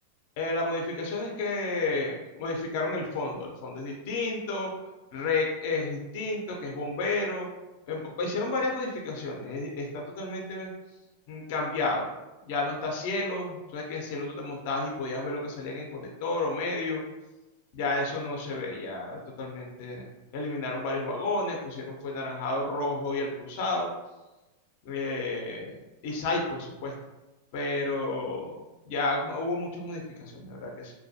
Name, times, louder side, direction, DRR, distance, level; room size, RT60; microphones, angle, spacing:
voice 1, 0.4-4.7 5.1-7.5 7.9-10.7 11.3-12.1 12.4-17.0 17.8-20.1 20.3-23.9 24.8-26.9 27.5-28.6 28.9-30.9, left 2 dB, 50° left, 0 dB, 0.5 m, -31 dB
2.3 x 2.2 x 2.6 m, 1.0 s
supercardioid pair, 150°, 0 cm